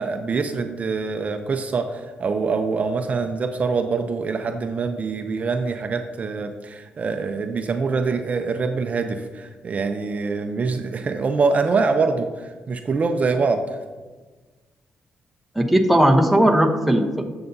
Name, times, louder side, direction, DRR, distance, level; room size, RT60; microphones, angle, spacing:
voice 1, 0.0-13.6, right 4 dB, 40° right, 6 dB, 0.5 m, -24 dB
voice 2, 15.6-17.2, right 1 dB, ahead, 2 dB, 0.9 m, -17 dB
10.5 x 6.9 x 2.7 m, 1.3 s
cardioid pair, 100°, 4 cm